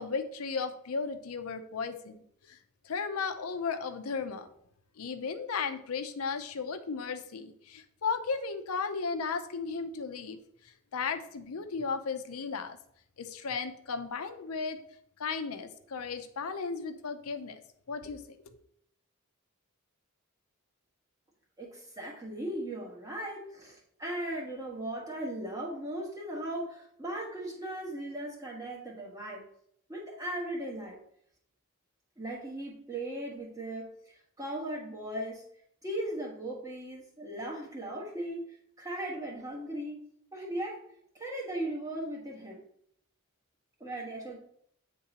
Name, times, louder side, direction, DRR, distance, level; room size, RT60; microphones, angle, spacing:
voice 1, 0.0-2.2 2.5-2.6 2.8-4.5 5.0-10.4 10.9-12.8 13.2-14.8 15.2-17.6 17.9-18.2, left 5 dB, 85° left, 8 dB, 0.6 m, -35 dB
voice 2, 21.6-29.4 29.9-31.0 32.2-33.9 34.4-35.4 35.8-38.5 38.8-40.0 40.3-40.8 41.1-42.6 43.8-44.4, right 1 dB, 15° right, -2 dB, 1.3 m, -37 dB
9.2 x 3.7 x 2.8 m, 0.68 s
head